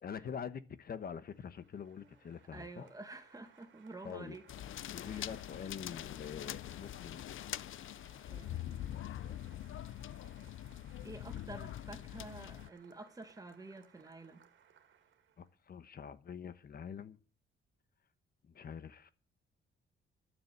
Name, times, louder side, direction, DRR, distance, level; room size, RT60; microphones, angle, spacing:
voice 1, 0.0-2.9 4.0-4.3 4.9-7.2 15.4-17.2 18.4-19.1, left 7 dB, 50° left, 1.2 m, -45 dB
Applause, 1.1-15.5, right 8 dB, 70° right, 2.1 m, -65 dB
voice 2, 2.0-4.4 5.1-5.3 8.3-9.0 11.0-14.4, right 2 dB, 15° right, 1.9 m, -50 dB
sound 1, 4.5-12.7, left 12 dB, 80° left, 0.6 m, -44 dB
12.5 x 7.3 x 8.2 m
cardioid pair, 130°, 20 cm